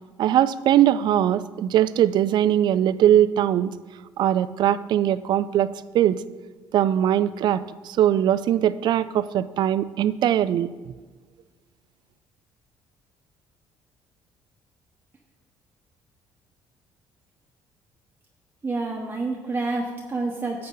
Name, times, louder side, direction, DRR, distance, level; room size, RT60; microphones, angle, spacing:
voice 1, 0.2-3.7 4.2-5.7 5.9-6.2 6.7-10.7, right 11 dB, 65° right, 16 dB, 0.4 m, -21 dB
voice 2, 18.6-20.7, right 3 dB, 25° right, -1 dB, 1.1 m, -28 dB
11.0 x 7.8 x 4.0 m, 1.3 s
cardioid pair, 90°, 8 cm